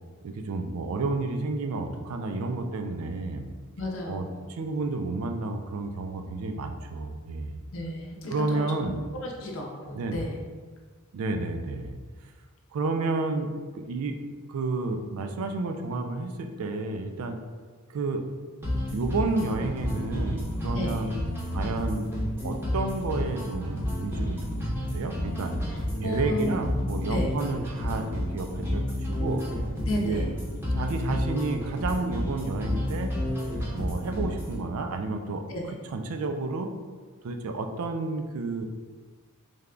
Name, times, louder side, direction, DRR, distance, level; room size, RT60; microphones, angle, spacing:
voice 1, 0.2-3.5 4.1-7.6 8.3-9.0 9.9-10.2 11.1-11.9 12.7-17.4 17.9-18.2 18.9-21.1 21.5-22.0 22.4-25.5 26.0-29.4 29.9-30.3 30.7-33.1 33.7-35.4 35.9-36.7 37.2-38.7, right 3 dB, 70° right, 6 dB, 0.4 m, -31 dB
voice 2, 3.8-4.4 7.7-8.9 9.2-10.4 20.7-21.1 26.0-26.5 27.1-27.3 29.8-30.3 35.5-35.6, left 1 dB, 60° left, 0 dB, 0.6 m, -32 dB
sound 1, 18.6-34.6, left 1 dB, 10° right, 0.7 m, -31 dB
3.3 x 2.2 x 3.7 m, 1.4 s
head